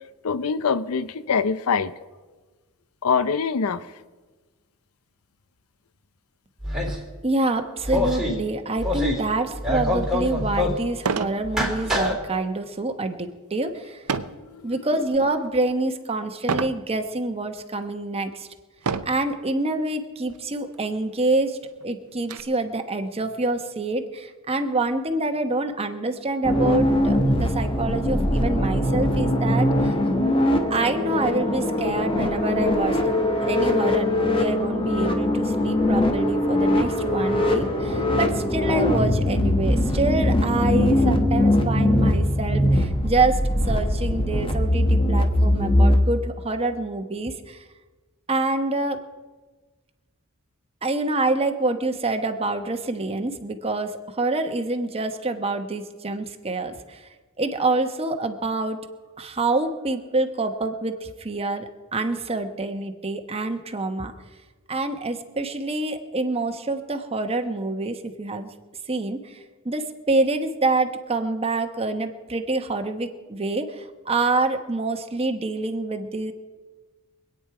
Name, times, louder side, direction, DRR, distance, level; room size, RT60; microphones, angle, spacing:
voice 1, 0.2-1.9 3.0-3.8, left 5 dB, 85° left, 14 dB, 0.6 m, -23 dB
sound 1, 6.6-7.1 7.8-8.3 8.8-9.3 9.5-10.8 11.4-12.2, left 1 dB, 5° right, 3.3 m, -25 dB
voice 2, 7.2-14.0 14.6-18.5 19.0-21.6 21.8-30.0 30.7-43.4 43.7-47.6 48.3-49.0 50.8-57.1 57.4-58.8 59.2-64.1 64.7-68.5 68.9-69.4 69.6-76.3, right 2 dB, 30° right, 6 dB, 1.1 m, -26 dB
sound 2, 10.0-10.1 11.0-11.4 11.9-12.2 14.1-14.5 15.1-15.5 16.5-16.8 17.6-17.7 18.8-19.3 20.3-20.4 20.7-20.8 21.3-22.4, right 5 dB, 90° right, 0.7 m, -28 dB
sound 3, 26.4-45.9, left 1 dB, 25° left, 1.4 m, -21 dB
25.0 x 9.2 x 4.8 m, 1.3 s
head